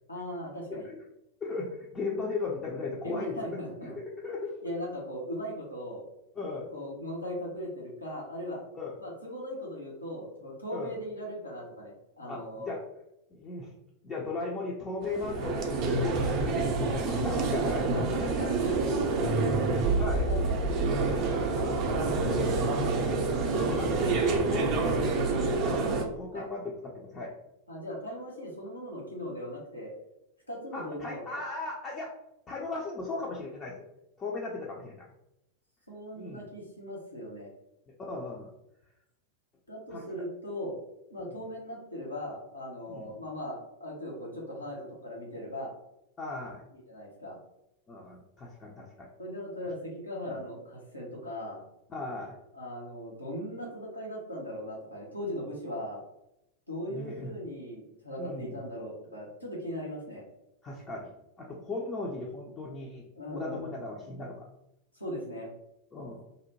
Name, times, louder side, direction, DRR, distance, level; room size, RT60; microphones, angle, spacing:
voice 1, 0.1-0.9 3.0-3.9 4.6-6.0 6.7-8.6 9.0-12.7 17.9-19.7 20.0-23.1 25.8-26.1 26.3-26.5 27.7-29.9 30.5-31.2 35.9-37.5 39.7-40.8 41.1-45.7 46.9-47.4 49.2-51.6 52.5-56.0 56.7-60.2 63.1-63.7 64.9-65.5, equal, 85° left, -4 dB, 0.8 m, -39 dB
voice 2, 1.4-3.3 4.2-4.6 6.4-6.7 8.7-9.0 10.7-10.9 12.3-12.8 13.3-13.7 14.0-17.9 20.0-20.3 23.5-25.4 26.2-27.3 30.7-32.1 32.5-33.8 34.2-35.1 36.2-36.4 38.0-38.5 39.9-40.0 42.9-43.1 46.2-46.6 47.9-49.1 50.3-50.4 51.9-52.4 56.9-57.3 58.2-58.6 60.6-61.1 61.4-63.0 63.3-64.4 65.9-66.2, left 3 dB, 25° left, -3 dB, 0.4 m, -37 dB
sound 1, 15.0-26.0, right 3 dB, 35° right, 0.5 m, -27 dB
2.7 x 2.1 x 2.8 m, 0.86 s
figure-of-eight pair, 90°, 0 cm